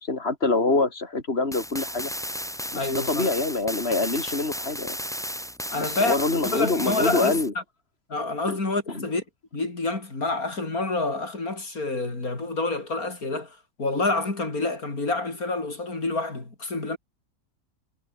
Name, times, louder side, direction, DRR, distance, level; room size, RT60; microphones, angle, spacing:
voice 1, 0.0-2.1 2.7-5.0 5.8-7.5 8.9-9.0, left 3 dB, 45° left, 4.0 m, -25 dB
sound 1, 1.5-7.5, equal, ahead, 2.8 m, -34 dB
voice 2, 2.7-3.3 5.7-6.2 6.5-7.6 8.1-9.2 9.5-17.0, left 3 dB, 85° left, 5.2 m, -28 dB
omnidirectional pair, 1.5 m